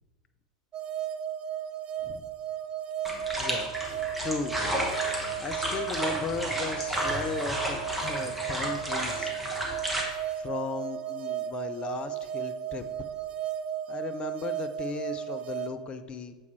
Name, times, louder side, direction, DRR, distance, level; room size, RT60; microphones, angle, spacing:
sound 1, 0.7-15.7, right 10 dB, 25° right, 0.4 m, -35 dB
sound 2, 3.0-10.0, equal, 5° right, 1.1 m, -32 dB
voice 1, 3.4-3.7 4.2-4.7 5.4-9.3 10.4-13.1 13.9-16.3, left 5 dB, 25° left, 10 dB, 0.5 m, -36 dB
7.0 x 3.1 x 4.5 m, 1.3 s
figure-of-eight pair, 90°, 4 cm